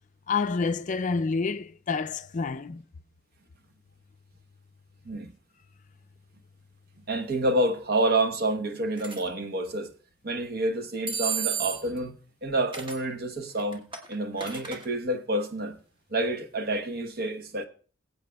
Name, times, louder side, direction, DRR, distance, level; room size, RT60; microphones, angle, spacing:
voice 1, 0.3-2.8, left 4 dB, 40° left, 0.4 m, -28 dB
voice 2, 7.1-9.9 10.2-12.1 12.4-13.8 14.1-15.8 16.1-17.6, right 1 dB, 50° right, 1.0 m, -28 dB
sound 1, 9.0-9.2 11.1-12.0 12.7-13.0 13.6-14.9, right 6 dB, 25° right, 1.3 m, -32 dB
22.0 x 8.1 x 2.3 m
head